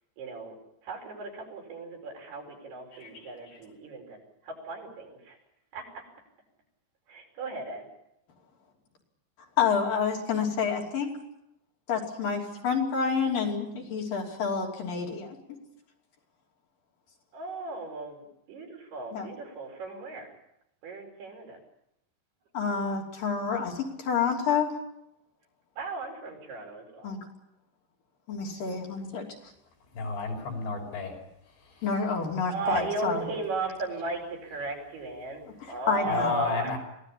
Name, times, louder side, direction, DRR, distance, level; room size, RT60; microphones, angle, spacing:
voice 1, 0.2-0.6 0.8-5.4 5.7-6.0 7.1-7.9 17.3-20.3 20.8-21.6 25.8-27.1 32.5-36.8, right 3 dB, 60° right, 2 dB, 6.9 m, -36 dB
voice 2, 9.6-11.1 11.9-15.4 19.1-19.3 22.5-24.7 27.0-27.2 28.3-29.3 31.8-33.2 35.6-36.3, left 6 dB, 55° left, 0 dB, 4.4 m, -28 dB
voice 3, 29.9-31.2 31.6-31.8 36.1-36.8, left 4 dB, 75° left, 2 dB, 7.7 m, -32 dB
24.5 x 18.0 x 8.5 m, 0.81 s
omnidirectional pair, 5.1 m